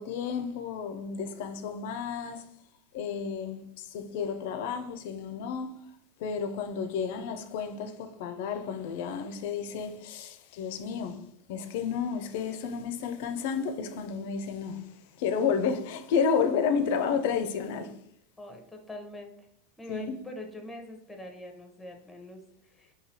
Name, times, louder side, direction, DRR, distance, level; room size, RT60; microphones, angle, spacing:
voice 1, 0.0-2.4 2.9-5.7 6.2-11.2 11.5-17.9 19.9-20.1, left 6 dB, 65° left, 0.4 m, -31 dB
voice 2, 18.4-19.3 19.8-22.9, left 1 dB, 5° left, 0.7 m, -43 dB
3.9 x 2.7 x 2.8 m
hypercardioid pair, 95°, 0 cm